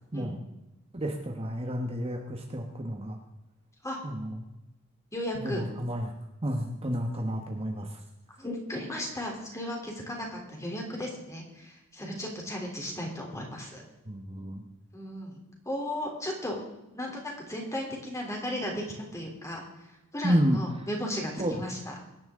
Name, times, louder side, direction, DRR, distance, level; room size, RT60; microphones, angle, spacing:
voice 1, 0.9-3.2 4.0-4.5 5.4-6.1 6.4-8.0 14.1-14.6 20.2-20.6 21.4-21.5, equal, 25° right, 2 dB, 1.2 m, -30 dB
voice 2, 5.1-5.6 8.4-13.8 14.9-15.4 15.6-16.6 16.9-19.6 20.1-21.9, left 1 dB, 15° left, 0 dB, 3.3 m, -35 dB
24.0 x 10.5 x 3.8 m, 0.97 s
head